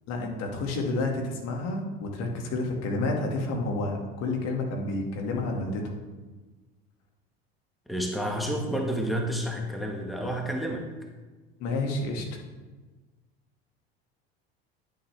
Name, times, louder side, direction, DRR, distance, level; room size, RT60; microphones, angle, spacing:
voice 1, 0.1-5.8 11.6-12.4, left 2 dB, 55° left, 1 dB, 2.0 m, -30 dB
voice 2, 7.9-10.9, equal, ahead, 1 dB, 1.4 m, -30 dB
11.0 x 6.9 x 3.3 m, 1.3 s
hypercardioid pair, 80°, 30 cm